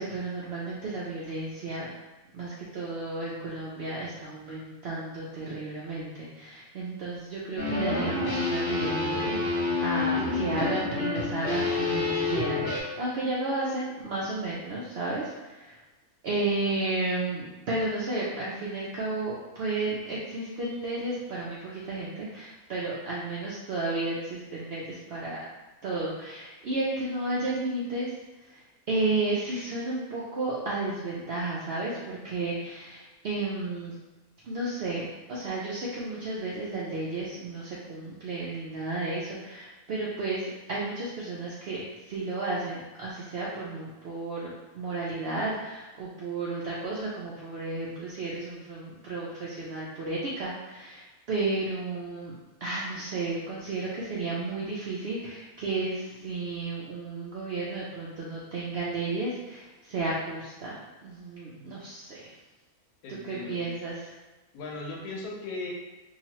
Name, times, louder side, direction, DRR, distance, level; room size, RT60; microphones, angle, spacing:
voice 1, 0.0-1.9 2.3-15.8 16.2-25.4 25.8-28.1 28.4-33.9 34.4-35.0 35.3-52.3 52.6-60.8 61.0-62.3 63.1-64.1, right 2 dB, 75° right, -6 dB, 0.5 m, -33 dB
sound 1, 7.6-12.8, left 3 dB, 50° left, 0.7 m, -28 dB
voice 2, 63.0-63.7 64.5-65.7, left 3 dB, 85° left, -1 dB, 1.1 m, -38 dB
2.8 x 2.3 x 2.9 m, 1.1 s
omnidirectional pair, 1.5 m